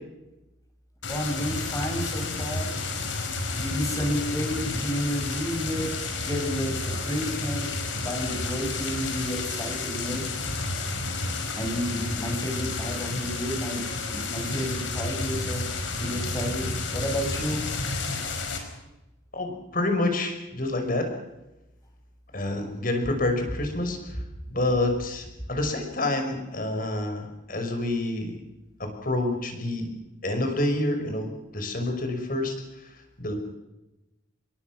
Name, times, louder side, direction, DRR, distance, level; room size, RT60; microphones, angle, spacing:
sound 1, 1.0-18.6, left 3 dB, 70° left, 5.4 m, -31 dB
voice 1, 1.1-2.7 3.6-5.9 6.3-10.2 11.6-13.8 14.1-15.6 16.0-17.6, equal, 15° left, 3 dB, 6.7 m, -31 dB
voice 2, 19.3-21.1 22.3-24.0 24.5-28.4 28.8-29.9 30.2-32.5 33.2-33.3, left 2 dB, 45° left, 5 dB, 5.8 m, -28 dB
28.0 x 22.5 x 6.3 m, 0.99 s
head